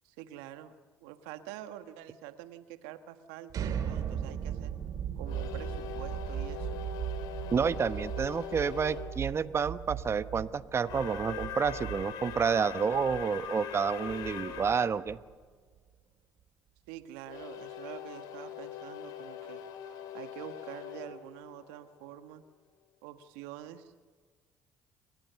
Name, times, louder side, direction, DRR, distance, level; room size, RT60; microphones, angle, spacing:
voice 1, 0.0-0.7 1.0-4.7 5.2-6.8 16.9-19.6 20.1-22.4 23.0-23.9, right 12 dB, 80° right, 9 dB, 1.5 m, -46 dB
sound 1, 3.5-15.3, right 9 dB, 60° right, 3.0 m, -38 dB
sound 2, 5.2-9.1 10.8-14.9 17.3-22.1, left 9 dB, 70° left, 3.3 m, -42 dB
voice 2, 7.5-15.2, right 6 dB, 40° right, 13 dB, 1.1 m, -29 dB
29.0 x 21.5 x 6.9 m, 1.5 s
hypercardioid pair, 60°, 7 cm